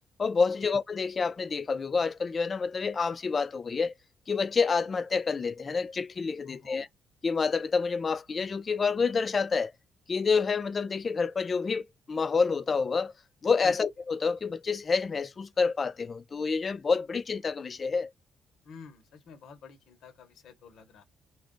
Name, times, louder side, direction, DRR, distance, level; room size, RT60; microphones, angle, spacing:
voice 1, 0.2-3.9 4.3-6.9 7.2-9.7 10.1-13.1 13.4-18.1, left 5 dB, 40° left, 0.4 m, -28 dB
voice 2, 6.5-6.9 13.6-13.7 18.6-21.0, left 5 dB, 75° left, 1.0 m, -49 dB
2.4 x 2.3 x 3.7 m
cardioid pair, 90°, 0 cm